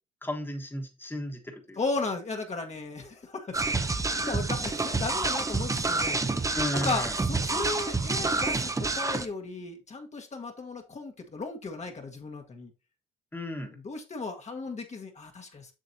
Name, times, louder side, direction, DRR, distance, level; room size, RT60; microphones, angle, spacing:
voice 1, 0.2-1.8 6.5-7.1 13.3-13.8, left 1 dB, 10° left, 3 dB, 1.4 m, -34 dB
voice 2, 1.8-3.7 4.0-6.2 6.5-12.7 13.7-15.7, left 3 dB, 35° left, 2 dB, 1.3 m, -35 dB
sound 1, 3.5-9.3, right 3 dB, 15° right, 0.6 m, -28 dB
7.6 x 6.4 x 2.7 m, 0.29 s
cardioid pair, 90°, 20 cm